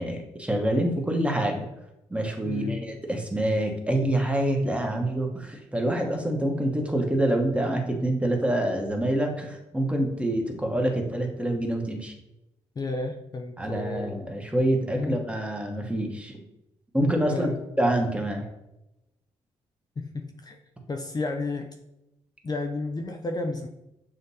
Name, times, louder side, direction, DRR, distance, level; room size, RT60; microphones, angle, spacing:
voice 1, 0.0-1.7 2.1-12.1 13.6-16.4 16.9-17.5 17.8-18.4, right 1 dB, 10° right, 2 dB, 1.1 m, -26 dB
voice 2, 2.5-2.9 12.8-14.2 14.9-15.3 17.3-17.6 20.0-20.6 20.9-21.7 22.4-23.7, left 3 dB, 30° left, 4 dB, 0.5 m, -32 dB
6.6 x 2.5 x 2.7 m, 0.90 s
supercardioid pair, 55°, 13 cm